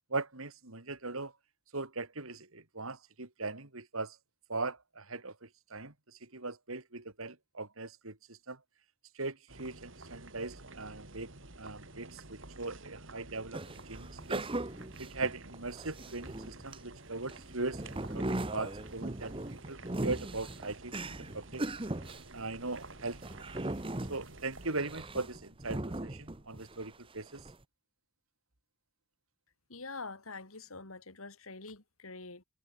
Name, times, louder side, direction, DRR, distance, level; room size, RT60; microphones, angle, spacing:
voice 1, 0.1-1.3 1.7-4.2 4.5-5.9 6.2-8.6 9.1-11.3 11.6-14.5 15.0-19.3 19.7-21.6 22.3-23.2 24.1-27.4, right 3 dB, 80° right, 3.2 m, -39 dB
sound 1, 9.5-24.7, right 2 dB, 65° right, 3.7 m, -51 dB
sound 2, 13.5-16.8 17.3-26.9 27.3-27.6, right 1 dB, 25° right, 1.1 m, -39 dB
voice 2, 29.7-32.4, left 3 dB, 80° left, 3.4 m, -45 dB
head